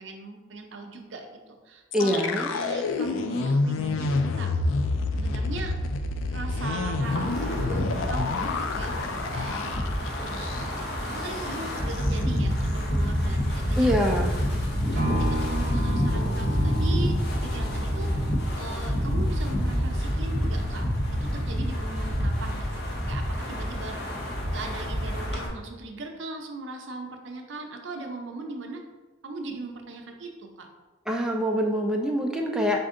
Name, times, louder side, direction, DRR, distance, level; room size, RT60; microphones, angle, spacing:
voice 1, 0.0-4.5 5.1-5.7 6.3-9.0 9.3-9.7 10.2-10.7 11.1-13.9 14.9-20.9 21.2-24.0 24.5-28.8 29.2-30.7, right 3 dB, 70° right, 3 dB, 0.6 m, -39 dB
sound 1, 1.9-10.9 11.2-11.4 11.8-12.2, left 3 dB, 85° left, 0.3 m, -28 dB
voice 2, 1.9-2.5 13.8-14.3 31.1-32.9, equal, 5° right, 1 dB, 0.4 m, -24 dB
Wind, 7.0-25.5, equal, 55° left, 0.8 m, -27 dB
sound 2, 15.0-23.1 23.5-23.6, right 1 dB, 40° right, 0.8 m, -37 dB
4.3 x 2.6 x 3.7 m, 1.3 s
head